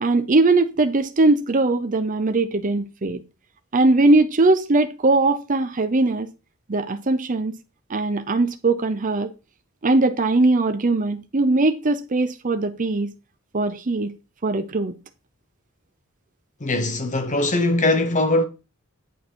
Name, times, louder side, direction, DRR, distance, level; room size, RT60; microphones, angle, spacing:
voice 1, 0.0-3.2 3.7-6.3 6.7-7.5 7.9-9.3 9.8-13.1 13.5-14.1 14.4-15.0, right 2 dB, 40° right, 0.7 m, -20 dB
voice 2, 16.6-18.5, left 2 dB, 35° left, 1.0 m, -21 dB
9.0 x 4.9 x 4.6 m
head